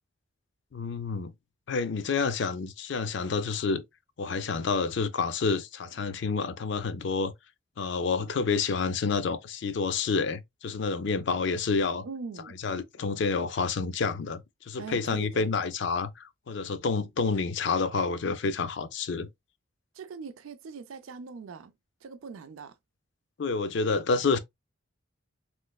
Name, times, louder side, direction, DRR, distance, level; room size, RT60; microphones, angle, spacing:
voice 1, 0.7-1.3 1.7-3.8 4.2-7.3 7.8-12.0 12.6-19.3 23.4-24.4, left 4 dB, 60° left, 0.4 m, -29 dB
voice 2, 12.0-12.6 14.8-15.5 19.9-21.7 22.0-22.8, right 5 dB, 90° right, 0.4 m, -41 dB
3.1 x 3.1 x 2.3 m
head